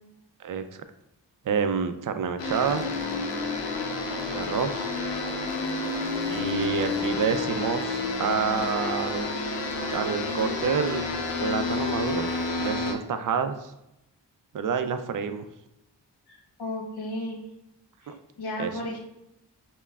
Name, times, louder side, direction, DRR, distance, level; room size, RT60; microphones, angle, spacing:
voice 1, 1.4-2.9 4.3-4.9 6.3-9.3 9.9-11.0 11.4-12.3 12.6-13.7 14.5-15.5 18.1-18.2 18.6-18.8, right 6 dB, 50° right, 9 dB, 0.5 m, -28 dB
sound 1, 2.4-12.9, left 3 dB, 80° left, 0.6 m, -30 dB
voice 2, 16.3-17.4 18.0-19.0, left 1 dB, 65° left, -1 dB, 1.1 m, -34 dB
5.3 x 2.3 x 2.3 m, 0.86 s
cardioid pair, 40°, 43 cm